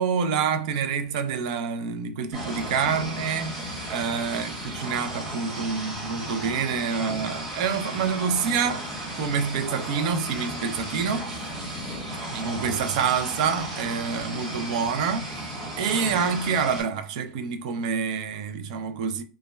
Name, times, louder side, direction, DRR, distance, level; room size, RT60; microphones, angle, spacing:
voice 1, 0.0-11.5 12.3-15.4 15.8-19.2, right 6 dB, 65° right, 0.4 m, -27 dB
sound 1, 2.3-16.8, right 1 dB, 15° right, 0.9 m, -35 dB
2.2 x 2.0 x 3.2 m
supercardioid pair, 155°, 4 cm